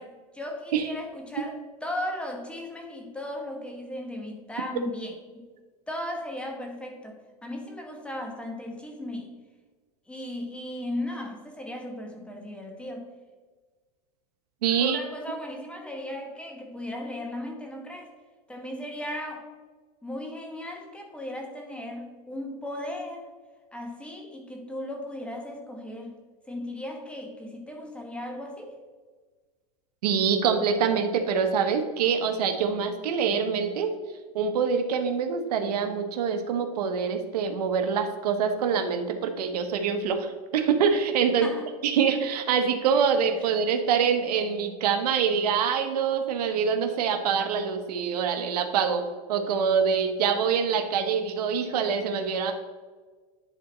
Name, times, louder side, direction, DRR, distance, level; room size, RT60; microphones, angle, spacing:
voice 1, 0.0-5.5 5.9-9.3 10.1-13.1 14.8-18.1 18.5-19.5 20.0-23.3 23.7-26.2 26.5-28.8 41.4-41.7 43.4-43.5, left 1 dB, 5° left, 2 dB, 1.1 m, -36 dB
voice 2, 14.6-15.0 30.0-33.9 34.3-41.5 41.8-49.0 49.3-52.5, right 6 dB, 80° right, 7 dB, 1.1 m, -25 dB
10.5 x 3.9 x 4.3 m, 1.4 s
supercardioid pair, 135°, 20 cm